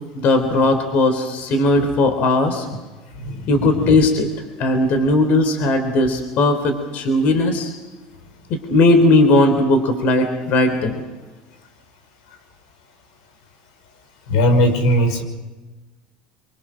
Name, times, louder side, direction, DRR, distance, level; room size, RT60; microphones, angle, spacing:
voice 1, 0.1-2.7 3.5-4.3 4.6-7.7 8.5-10.9, left 2 dB, 50° left, 7 dB, 3.7 m, -17 dB
voice 2, 14.3-15.2, equal, 85° left, 5 dB, 5.8 m, -17 dB
26.0 x 24.0 x 6.3 m, 1.2 s
supercardioid pair, 135°, 3 cm